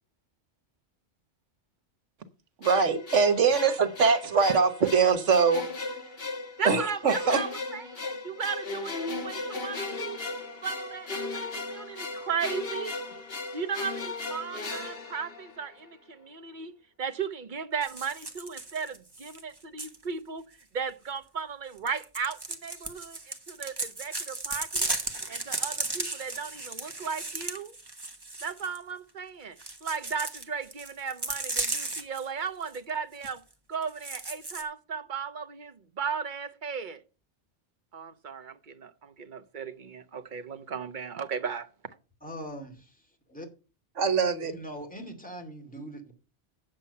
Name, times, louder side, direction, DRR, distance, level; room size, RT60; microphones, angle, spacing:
sound 1, 2.6-15.9, left 3 dB, 55° left, 1.7 m, -36 dB
voice 1, 2.6-5.6 6.6-7.4 44.0-44.5, right 5 dB, 90° right, 1.4 m, -23 dB
voice 2, 6.6-10.2 10.6-13.0 13.5-20.4 20.7-23.2 23.5-24.9 25.3-27.7 28.4-33.4 33.7-37.0 37.9-41.7, right 6 dB, 45° right, 0.9 m, -36 dB
sound 2, 17.8-20.0 21.8-28.8 29.6-32.2 32.6-32.8 33.2-33.3 33.8-34.6, right 2 dB, 20° right, 1.2 m, -35 dB
voice 3, 42.2-43.5 44.4-46.1, equal, 5° left, 2.3 m, -42 dB
9.0 x 7.6 x 5.5 m
omnidirectional pair, 1.2 m